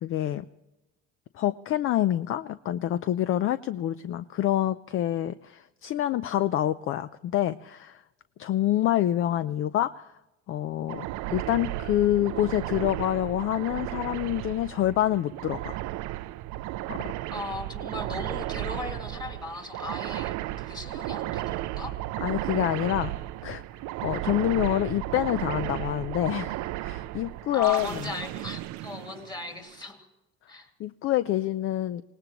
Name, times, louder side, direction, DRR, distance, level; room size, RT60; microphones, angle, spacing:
voice 1, 0.0-0.4 1.3-8.0 8.4-10.1 10.5-15.8 16.9-17.0 22.2-23.1 23.4-23.6 24.0-27.9 30.8-32.0, left 13 dB, 45° left, 14 dB, 0.4 m, -27 dB
sound 1, 10.9-29.7, right 16 dB, 65° right, 0.5 m, -34 dB
voice 2, 17.3-22.0 27.5-30.1 30.5-30.7, left 3 dB, 15° left, 4 dB, 2.2 m, -37 dB
25.5 x 18.5 x 3.0 m, 1.0 s
cardioid pair, 140°, 30 cm